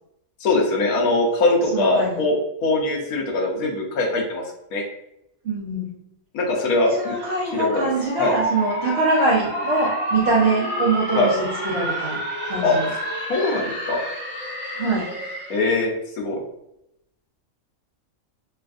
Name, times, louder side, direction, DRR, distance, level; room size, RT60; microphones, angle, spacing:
voice 1, 0.4-2.3 2.6-4.4 4.7-4.8 6.3-7.1 7.5-7.9 8.2-8.3 11.1-11.3 12.6-12.7 13.3-14.0 15.5-16.4, left 2 dB, 75° left, 0 dB, 1.1 m, -21 dB
voice 2, 1.7-2.2 5.4-5.9 6.8-12.9 14.7-15.1, right 2 dB, 55° right, -8 dB, 0.9 m, -23 dB
sound 1, 6.8-15.7, equal, 10° right, 0.7 m, -29 dB
3.3 x 2.3 x 2.4 m, 0.82 s
omnidirectional pair, 1.5 m